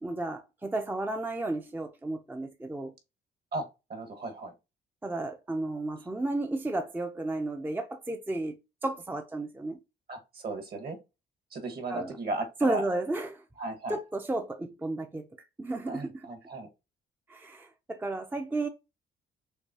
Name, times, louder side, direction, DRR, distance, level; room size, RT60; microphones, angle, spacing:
voice 1, 0.0-2.9 5.0-8.6 8.8-9.8 11.9-12.1 12.6-13.4 13.9-15.3 15.6-16.2 17.3-18.7, right 2 dB, 10° right, 0.5 m, -33 dB
voice 2, 3.5-4.5 10.1-11.0 11.5-12.9 13.6-14.0 15.9-16.7, right 2 dB, 50° right, 1.7 m, -36 dB
6.6 x 2.7 x 2.8 m
cardioid pair, 90°, 20 cm